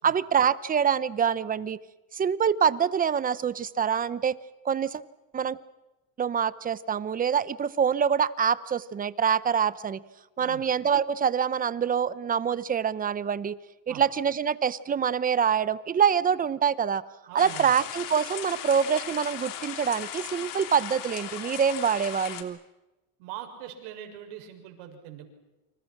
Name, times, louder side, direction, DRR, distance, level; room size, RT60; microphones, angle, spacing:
voice 1, 0.0-1.8 2.1-4.4 4.6-5.0 5.3-5.6 6.2-10.0 10.4-13.6 13.9-17.0 17.3-22.6, right 7 dB, 20° right, 17 dB, 0.8 m, -25 dB
voice 2, 17.3-17.7 23.2-25.3, right 11 dB, 80° right, 4 dB, 6.8 m, -42 dB
sound 1, 17.4-22.4, left 10 dB, 55° left, 3.2 m, -37 dB
29.5 x 27.0 x 6.1 m, 1.0 s
cardioid pair, 150°, 39 cm